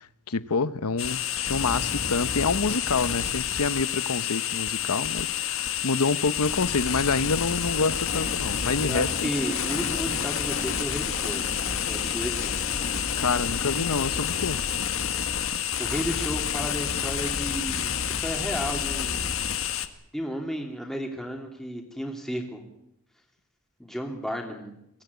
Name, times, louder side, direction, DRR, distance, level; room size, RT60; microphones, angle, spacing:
voice 1, 0.0-9.3 13.2-14.6, left 4 dB, 90° left, 0.9 m, -27 dB
sound 1, 1.0-19.9, left 8 dB, 65° left, 1.7 m, -29 dB
Train, 7.0-16.7, left 2 dB, 40° left, 1.6 m, -41 dB
voice 2, 8.8-11.4 11.8-12.5 15.8-19.3 20.1-22.6 23.8-24.7, equal, ahead, 2.9 m, -33 dB
24.0 x 17.5 x 9.6 m
head